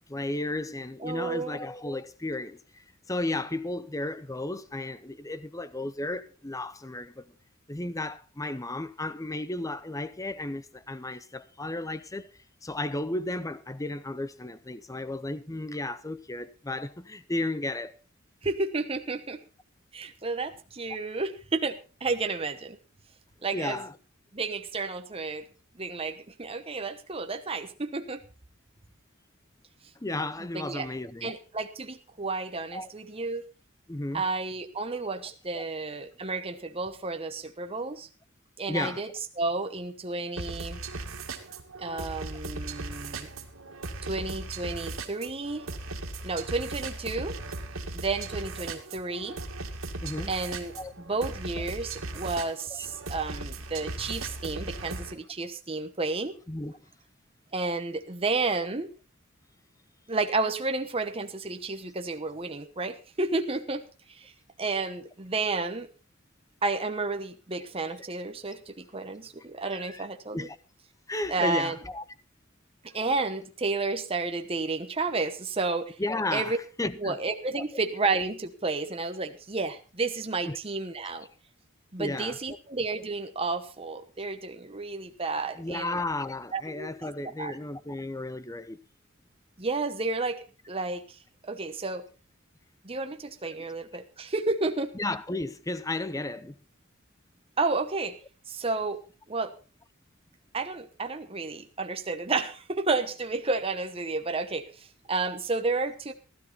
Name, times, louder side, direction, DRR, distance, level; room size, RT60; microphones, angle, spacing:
voice 1, 0.1-7.3 7.7-12.3 12.6-17.9 23.5-23.9 30.0-31.3 32.7-32.9 33.9-34.2 35.5-35.6 38.7-39.0 50.0-50.3 50.8-50.9 52.7-52.9 56.5-56.7 69.6-70.1 70.3-70.6 71.1-72.0 76.0-77.2 77.6-77.7 80.5-80.6 82.0-82.4 85.6-88.8 94.9-96.5, left 2 dB, 15° left, 0.8 m, -34 dB
voice 2, 1.0-1.6 18.4-19.4 19.9-22.8 23.4-23.8 24.3-25.4 25.7-28.2 30.5-30.9 31.2-33.5 34.1-38.1 38.6-39.1 39.4-40.8 41.8-43.3 44.0-45.7 46.2-47.4 47.9-49.4 50.3-50.7 51.1-56.4 57.5-58.9 60.1-63.8 64.1-64.3 64.6-65.9 66.6-70.5 71.3-71.8 72.9-76.0 76.3-76.6 77.0-81.3 81.9-86.0 86.5-87.6 89.6-92.0 92.8-94.9 97.6-98.2 98.5-99.0 99.3-99.5 100.5-106.1, right 3 dB, 30° right, 1.0 m, -31 dB
sound 1, 40.4-55.1, right 2 dB, 85° right, 2.2 m, -38 dB
16.0 x 12.5 x 4.1 m
head